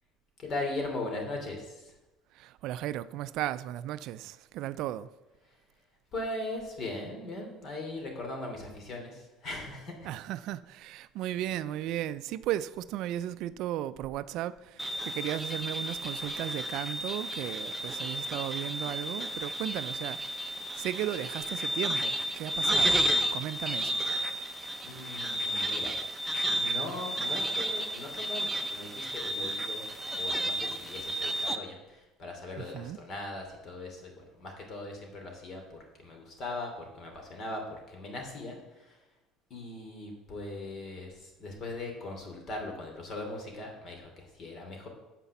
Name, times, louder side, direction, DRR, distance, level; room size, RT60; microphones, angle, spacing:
voice 1, 0.4-1.9 6.1-10.1 24.8-25.9 26.5-29.9 30.2-34.1 34.4-37.6 37.9-39.0 39.5-44.9, left 2 dB, 45° left, 2.9 m, -39 dB
voice 2, 2.3-5.1 10.0-24.0 32.6-33.0, right 13 dB, 65° right, 0.4 m, -35 dB
sound 1, 14.8-31.6, equal, 15° right, 0.7 m, -32 dB
7.4 x 5.7 x 7.0 m
supercardioid pair, 110°, 0 cm